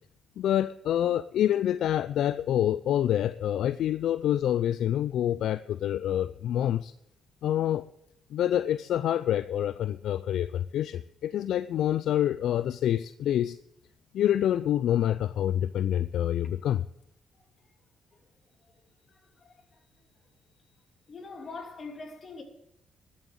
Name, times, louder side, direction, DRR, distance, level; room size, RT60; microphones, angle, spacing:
voice 1, 0.4-6.9 7.4-7.9 8.3-13.6 14.1-16.9, left 11 dB, 75° left, 0.4 m, -27 dB
voice 2, 19.1-19.8 21.1-22.4, left 3 dB, 45° left, 2.9 m, -43 dB
13.0 x 7.4 x 8.9 m
supercardioid pair, 70°, 0 cm